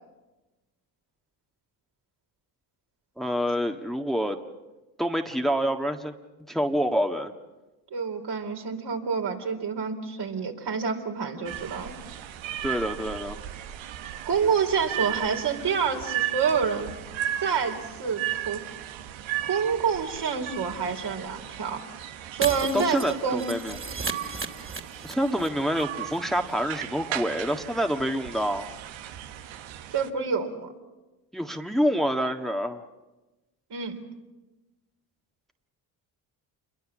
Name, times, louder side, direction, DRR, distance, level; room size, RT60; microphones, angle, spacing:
voice 1, 3.2-4.4 5.0-6.1 6.5-7.3 12.6-13.4 22.7-23.8 25.0-28.7 31.3-32.8, equal, ahead, 5 dB, 1.6 m, -27 dB
voice 2, 7.9-11.9 14.3-16.9 17.4-18.6 19.4-21.8 22.3-23.4 29.9-30.7 33.7-34.0, right 6 dB, 55° right, 3 dB, 4.2 m, -27 dB
sound 1, 11.4-30.1, right 12 dB, 75° right, 1.4 m, -36 dB
Shatter, 22.4-25.5 25.7-25.8 26.1-26.2, right 3 dB, 25° right, 2.8 m, -35 dB
28.0 x 22.5 x 7.5 m, 1.1 s
supercardioid pair, 60°, 47 cm